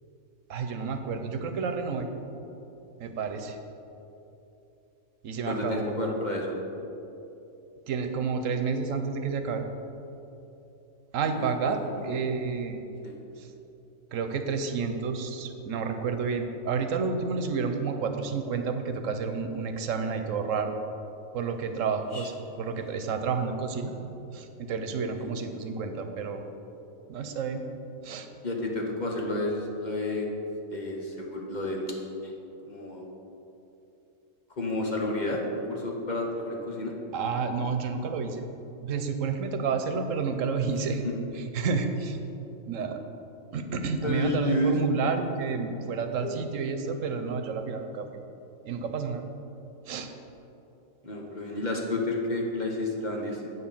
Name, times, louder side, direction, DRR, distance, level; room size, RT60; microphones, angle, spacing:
voice 1, 0.5-2.1 3.0-3.6 5.2-6.1 7.9-9.6 11.1-12.8 13.4-13.5 14.1-20.7 21.3-22.3 22.6-23.9 24.3-26.4 27.1-27.6 28.0-28.3 37.1-38.4 38.8-41.0 41.4-42.2 42.7-43.0 43.5-48.1 48.6-49.3 49.9-50.1, right 5 dB, 90° right, 7 dB, 1.1 m, -30 dB
voice 2, 5.5-6.6 11.6-12.2 13.0-13.2 22.1-22.3 25.2-25.3 28.4-30.3 30.7-31.9 32.2-32.3 32.7-33.0 34.6-36.9 40.9-41.1 44.0-44.8 51.0-53.5, left 2 dB, 40° left, 0 dB, 1.1 m, -31 dB
8.1 x 6.9 x 5.5 m, 2.9 s
omnidirectional pair, 1.3 m